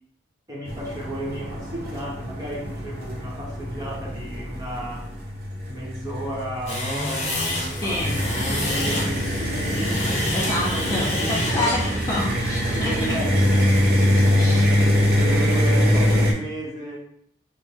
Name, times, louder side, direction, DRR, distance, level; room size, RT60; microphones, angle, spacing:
voice 1, 0.5-5.1 5.7-10.1 10.4-11.9 12.7-13.5 15.0-17.0, equal, 20° right, -4 dB, 0.9 m, -34 dB
sound 1, 0.7-16.3, equal, 50° right, 0.7 m, -24 dB
sound 2, 6.7-15.9, left 1 dB, 35° left, 1.0 m, -30 dB
voice 2, 7.8-8.2 10.3-11.8 12.1-13.2 14.2-14.7, left 1 dB, 20° left, -3 dB, 0.3 m, -28 dB
4.2 x 2.1 x 3.5 m, 0.67 s
head